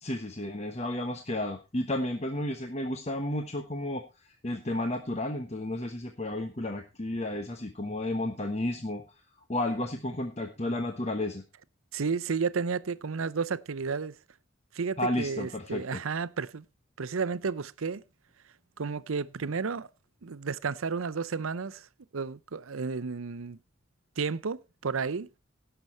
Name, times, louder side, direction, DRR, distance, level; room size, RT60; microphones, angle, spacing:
voice 1, 0.0-9.0 9.5-11.4 15.0-15.8, left 1 dB, 30° left, 1.1 m, -32 dB
voice 2, 11.9-14.2 14.7-16.6 17.0-18.0 18.8-19.9 20.2-21.9 22.1-23.6 24.2-25.3, right 5 dB, 80° right, 0.6 m, -32 dB
17.0 x 6.9 x 4.3 m
head